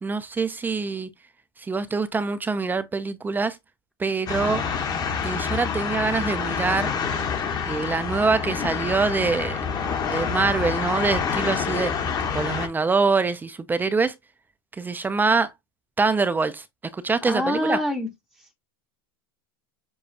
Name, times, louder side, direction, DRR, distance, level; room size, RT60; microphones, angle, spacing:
voice 1, 0.0-1.1 1.7-3.6 4.0-4.6 5.2-6.9 7.7-9.6 10.1-11.9 12.3-14.1 14.8-15.5 16.0-16.6 16.9-17.8, right 4 dB, 15° right, 0.5 m, -24 dB
sound 1, 4.3-12.7, left 6 dB, 35° left, 1.1 m, -27 dB
voice 2, 17.2-18.1 18.4-18.5, left 1 dB, 5° left, 0.8 m, -26 dB
6.9 x 2.3 x 2.7 m
supercardioid pair, 110°, 12 cm